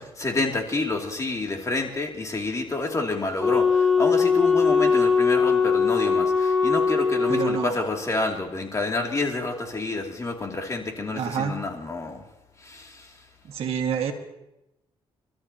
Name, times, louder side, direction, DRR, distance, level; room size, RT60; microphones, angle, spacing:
voice 1, 0.2-12.2 12.7-12.9, left 3 dB, 30° left, 1 dB, 2.7 m, -28 dB
Wind instrument woodwind instrument, 3.4-7.7, left 5 dB, ahead, 1.7 m, -21 dB
voice 2, 7.3-7.8 11.1-11.6 13.5-14.1, right 7 dB, 75° right, 3 dB, 1.8 m, -27 dB
30.0 x 13.0 x 2.9 m, 0.91 s
cardioid pair, 95°, 10 cm